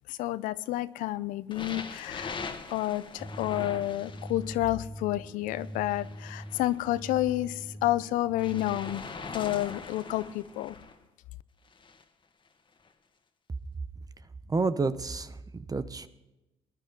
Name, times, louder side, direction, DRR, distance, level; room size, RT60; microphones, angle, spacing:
voice 1, 0.1-2.4 2.7-9.1 9.3-10.8, left 15 dB, 75° left, 17 dB, 0.6 m, -30 dB
sound 1, 1.5-4.6 5.5-7.4 8.4-11.0 11.7-12.0 12.8-12.9, left 4 dB, 35° left, 1.8 m, -42 dB
sound 2, 3.2-9.0, equal, ahead, 1.3 m, -43 dB
voice 2, 14.5-16.1, right 3 dB, 25° right, 12 dB, 0.9 m, -30 dB
20.0 x 10.5 x 3.8 m, 0.99 s
supercardioid pair, 60°, 14 cm